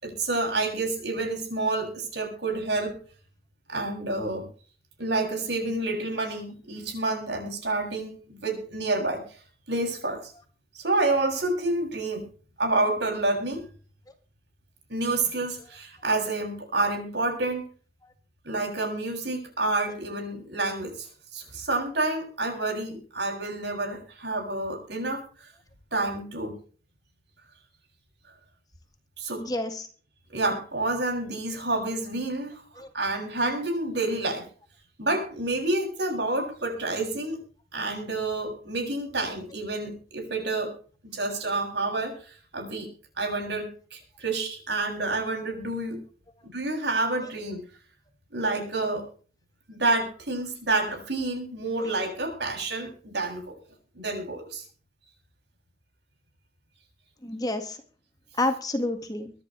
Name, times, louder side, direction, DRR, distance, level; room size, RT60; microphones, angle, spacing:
voice 1, 0.0-3.0 3.7-4.4 5.0-9.4 9.7-10.3 10.7-12.2 12.6-13.6 14.9-17.6 18.5-25.2 25.9-26.5 29.2-29.4 30.3-34.4 35.0-37.4 37.7-40.7 41.0-42.9 43.2-46.0 46.4-47.6 48.3-49.0 49.7-53.5 53.9-54.6, right 2 dB, 75° right, 3 dB, 7.1 m, -29 dB
voice 2, 29.4-29.9 32.8-32.9 51.8-51.9 57.2-57.8 58.4-59.3, left 2 dB, 20° left, 6 dB, 2.0 m, -29 dB
24.0 x 11.0 x 3.3 m, 0.41 s
head